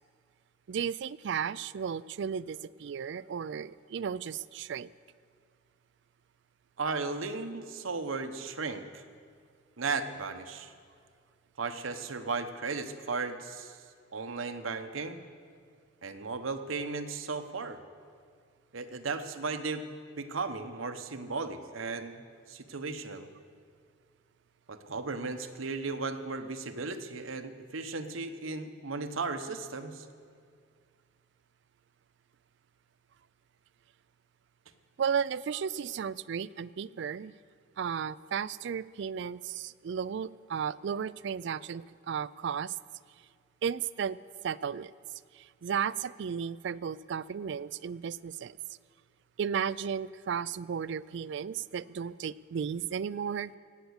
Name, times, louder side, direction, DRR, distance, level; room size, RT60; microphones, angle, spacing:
voice 1, 0.7-4.9 35.0-37.3 37.8-42.8 43.6-44.2 44.4-44.9 45.3-48.6 49.4-53.5, right 7 dB, 60° right, 18 dB, 0.3 m, -34 dB
voice 2, 6.8-9.0 9.8-10.7 11.6-13.8 14.1-15.2 16.0-17.8 18.7-19.8 20.2-22.2 22.5-23.3 24.7-30.1, right 4 dB, 90° right, 8 dB, 1.0 m, -35 dB
18.5 x 8.2 x 8.1 m, 2.1 s
head